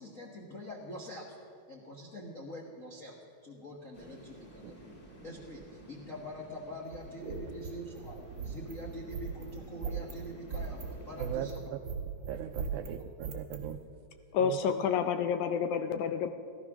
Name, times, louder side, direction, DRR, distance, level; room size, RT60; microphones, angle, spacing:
voice 1, 0.0-1.4 1.7-3.2 3.4-5.0 5.2-11.6 12.6-12.7 14.6-14.8, equal, 55° left, -1 dB, 0.9 m, -45 dB
sound 1, 3.9-11.4, right 1 dB, 20° left, 2.9 m, -52 dB
sound 2, 6.8-13.7, right 5 dB, 45° right, 1.8 m, -39 dB
voice 2, 12.3-13.8 14.4-14.6, right 11 dB, 80° right, 8 dB, 1.9 m, -39 dB
voice 3, 14.3-16.3, left 7 dB, 75° left, 8 dB, 1.9 m, -29 dB
17.0 x 13.0 x 6.0 m, 2.2 s
omnidirectional pair, 3.9 m